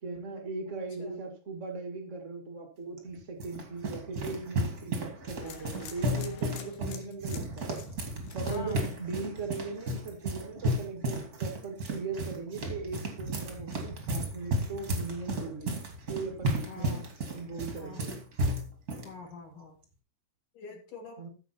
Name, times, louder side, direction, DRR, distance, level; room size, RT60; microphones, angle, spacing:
voice 1, 0.0-7.7 8.3-15.8 16.1-17.0 17.3-18.1 21.2-21.3, right 4 dB, 75° right, 4 dB, 0.6 m, -39 dB
voice 2, 0.7-1.2 8.4-9.0 16.7-17.1 17.8-18.1 19.0-19.8 20.5-21.2, left 4 dB, 55° left, 1 dB, 3.2 m, -45 dB
sound 1, 3.0-19.1, right 1 dB, 40° right, 1.3 m, -34 dB
sound 2, 5.4-9.4 9.8-10.2, left 9 dB, 80° left, 3.5 m, -49 dB
14.5 x 6.1 x 4.3 m, 0.34 s
omnidirectional pair, 5.1 m